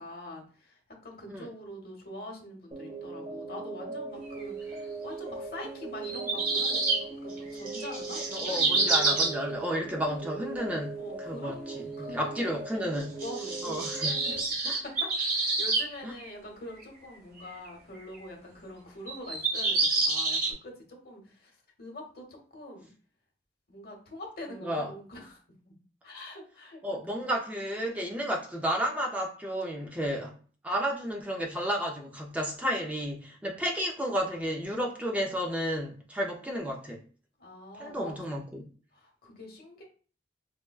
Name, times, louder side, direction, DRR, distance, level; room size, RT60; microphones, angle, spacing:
voice 1, 0.0-9.2 11.0-12.5 13.2-20.7 21.0-21.5 21.8-22.9 23.7-25.4 25.6-25.7 26.0-27.2 37.4-38.5 38.9-39.8, left 1 dB, 60° left, 0 dB, 0.9 m, -44 dB
sound 1, 2.7-14.4, right 4 dB, 30° right, 0.8 m, -40 dB
sound 2, 4.4-4.5 6.0-7.0 7.3-9.4 13.0-15.9 16.2-16.3 16.8-16.9 17.4-17.7 18.1-18.2 19.1-20.5, right 3 dB, 55° right, 1.1 m, -28 dB
voice 2, 8.3-11.6 11.8-13.2 13.6-14.2 14.6-14.8 16.0-16.1 24.6-24.9 26.8-30.4 30.6-37.0 37.8-38.7, equal, 10° right, 0 dB, 0.4 m, -32 dB
4.2 x 2.1 x 2.3 m, 0.41 s
head